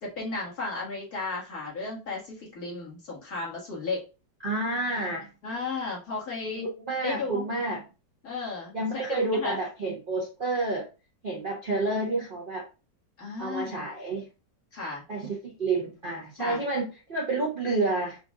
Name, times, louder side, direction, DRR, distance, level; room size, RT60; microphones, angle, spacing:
voice 1, 0.0-4.0 5.4-6.6 7.0-7.4 8.2-9.6 13.2-13.9 14.7-15.0 16.4-16.6, left 3 dB, 55° left, -4 dB, 2.2 m, -34 dB
voice 2, 4.4-5.3 6.5-7.8 8.7-10.9 11.2-12.7 13.4-14.3 15.1-18.2, right 2 dB, 45° right, -2 dB, 0.7 m, -29 dB
4.9 x 2.5 x 3.6 m, 0.31 s
omnidirectional pair, 1.9 m